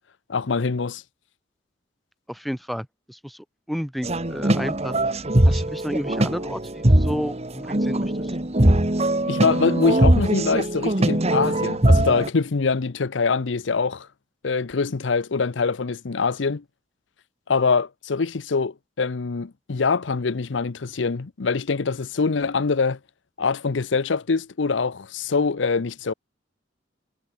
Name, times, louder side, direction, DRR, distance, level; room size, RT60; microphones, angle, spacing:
voice 1, 0.3-1.0 9.3-14.1 14.4-16.6 17.5-23.0 23.4-26.1, left 4 dB, 75° left, 0.7 m, -24 dB
voice 2, 2.3-8.4, equal, ahead, 1.5 m, -32 dB
sound 1, 4.0-12.3, right 1 dB, 35° right, 2.0 m, -21 dB
head